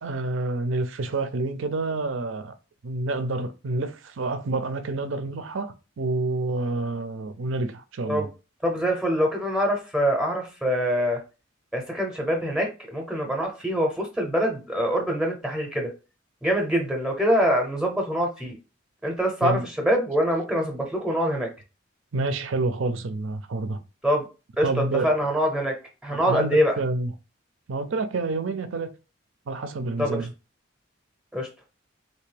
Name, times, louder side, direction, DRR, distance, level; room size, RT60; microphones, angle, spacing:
voice 1, 0.0-2.5 2.8-8.3 19.4-19.7 22.1-23.8 24.6-25.1 26.1-27.1 27.7-28.9 29.5-30.3, right 2 dB, 70° right, 0.5 m, -28 dB
voice 2, 8.6-11.2 11.7-15.9 16.4-18.6 19.0-21.5 24.0-24.3 24.6-24.7 25.0-25.8 26.0-26.7 30.0-30.2 31.3-31.5, equal, 5° right, 0.6 m, -24 dB
3.4 x 2.7 x 3.2 m
head